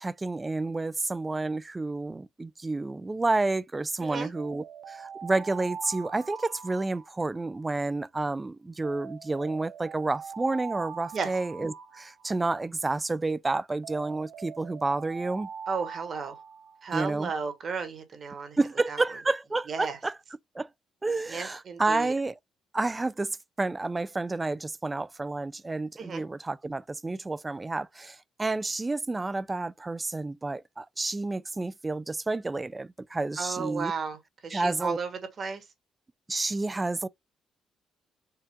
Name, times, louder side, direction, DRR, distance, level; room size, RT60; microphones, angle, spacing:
voice 1, 0.0-15.5 16.9-17.3 18.6-20.1 20.6-20.7 21.0-22.3 22.7-33.9 34.5-35.0 36.3-37.1, right 3 dB, 20° right, 0.3 m, -30 dB
Alarm, 4.3-7.7 8.8-12.7 13.8-17.1, right 6 dB, 75° right, 0.7 m, -43 dB
voice 2, 15.7-16.4 16.8-18.6 18.9-19.0 19.7-20.0 21.3-22.1 26.0-26.2 33.4-35.6, right 5 dB, 50° right, 1.3 m, -34 dB
4.6 x 2.4 x 3.5 m
cardioid pair, 90°, 0 cm